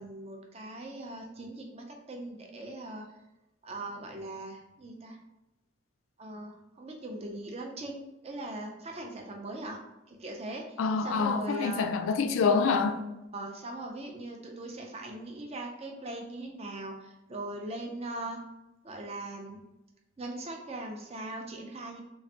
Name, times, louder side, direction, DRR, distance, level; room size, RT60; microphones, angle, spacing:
voice 1, 0.0-3.1 3.6-5.2 6.2-9.8 10.1-11.8 13.3-18.4 18.8-19.6 20.2-22.0, right 2 dB, 30° right, 0.5 m, -40 dB
voice 2, 10.8-13.0, left 5 dB, 70° left, 0.3 m, -26 dB
3.3 x 3.1 x 2.8 m
head